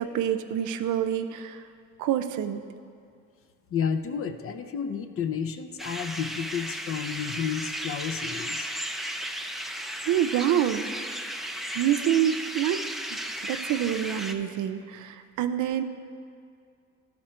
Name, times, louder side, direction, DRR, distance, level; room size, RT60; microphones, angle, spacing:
voice 1, 0.0-1.6 2.0-2.6 10.0-10.8 11.7-12.8 13.1-15.8, right 10 dB, 80° right, 9 dB, 0.5 m, -27 dB
voice 2, 3.7-8.7, left 7 dB, 50° left, 9 dB, 0.5 m, -31 dB
sound 1, 5.8-14.3, equal, ahead, 0.4 m, -35 dB
12.0 x 4.3 x 4.3 m, 2.3 s
cardioid pair, 90°, 30 cm